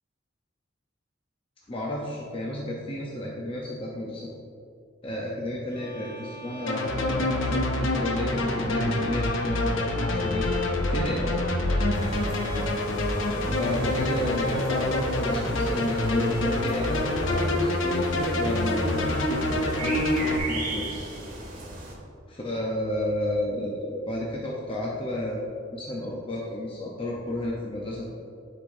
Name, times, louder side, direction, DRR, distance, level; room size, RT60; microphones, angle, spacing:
voice 1, 1.7-4.3 5.0-10.4 10.9-11.3 13.4-20.9 22.3-28.1, left 1 dB, 25° left, -4 dB, 0.7 m, -32 dB
sound 1, 5.7-21.3, left 3 dB, 45° left, 1.2 m, -39 dB
sound 2, 6.7-20.4, left 1 dB, 70° left, 0.7 m, -26 dB
sound 3, 11.9-21.9, right 2 dB, 45° right, 1.4 m, -37 dB
10.5 x 4.9 x 2.6 m, 2.5 s
head